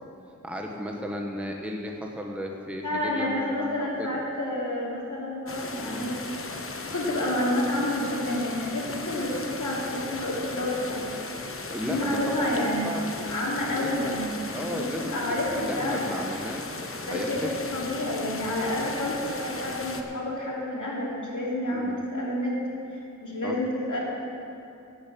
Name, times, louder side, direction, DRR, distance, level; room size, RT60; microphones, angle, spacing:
voice 1, 0.4-4.2 5.8-6.1 11.7-13.3 13.8-14.2 14.5-15.2 15.6-17.3 21.7-22.0 23.4-23.6, equal, 5° right, 1 dB, 1.1 m, -35 dB
voice 2, 2.8-6.2 6.8-11.0 11.8-12.9 13.3-14.4 14.6-16.2 17.1-22.6 22.9-24.0, left 1 dB, 70° left, -4 dB, 3.0 m, -29 dB
sound 1, 5.5-20.0, left 3 dB, 45° left, 1.0 m, -36 dB
12.0 x 7.2 x 8.4 m, 2.7 s
wide cardioid pair, 75°, 31 cm